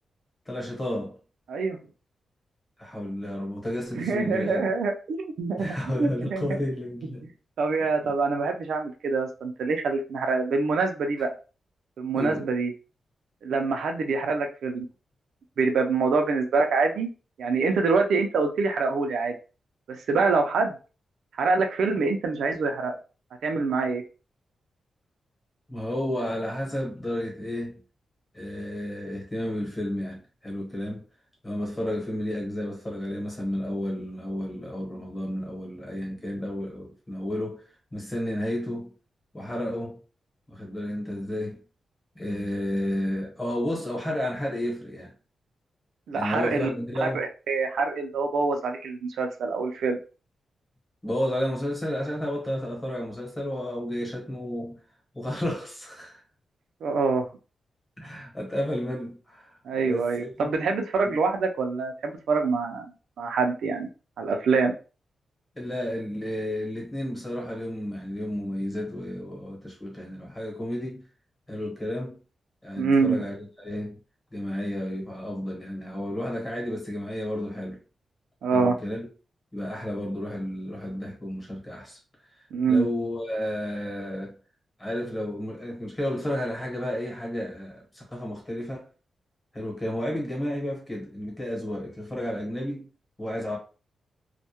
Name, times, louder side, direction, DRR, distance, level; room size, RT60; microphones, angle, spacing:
voice 1, 0.5-1.2 2.8-4.7 5.6-7.3 12.1-12.4 25.7-27.8 28.3-31.0 31.4-37.7 37.9-38.9 39.3-40.0 40.5-41.6 42.1-45.1 46.1-47.2 51.0-54.8 55.1-56.2 58.0-60.5 61.0-61.2 65.6-71.0 71.5-72.2 72.6-74.0 74.3-77.8 78.5-79.1 79.5-82.0 82.7-84.4 84.8-88.9 89.5-92.8 93.2-93.6, left 1 dB, 15° left, 1.0 m, -32 dB
voice 2, 4.0-6.5 7.6-11.4 12.0-12.7 13.4-14.9 15.6-17.1 17.4-19.4 19.9-20.8 21.4-23.0 23.4-24.0 46.1-46.7 47.0-50.0 56.8-57.2 59.7-62.9 63.2-63.9 64.2-64.7 72.8-73.2 78.4-78.8 82.5-82.9, right 4 dB, 90° right, 0.4 m, -25 dB
2.2 x 2.1 x 2.8 m
wide cardioid pair, 150°, 0 cm